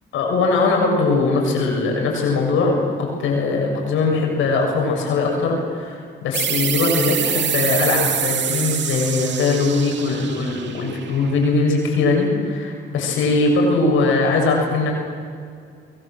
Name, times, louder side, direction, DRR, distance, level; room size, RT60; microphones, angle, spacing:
voice 1, 0.1-14.9, left 3 dB, 85° left, 0 dB, 7.1 m, -20 dB
sound 1, 6.3-11.6, right 8 dB, 65° right, 2.4 m, -25 dB
27.5 x 22.0 x 7.6 m, 2.2 s
cardioid pair, 90°, 20 cm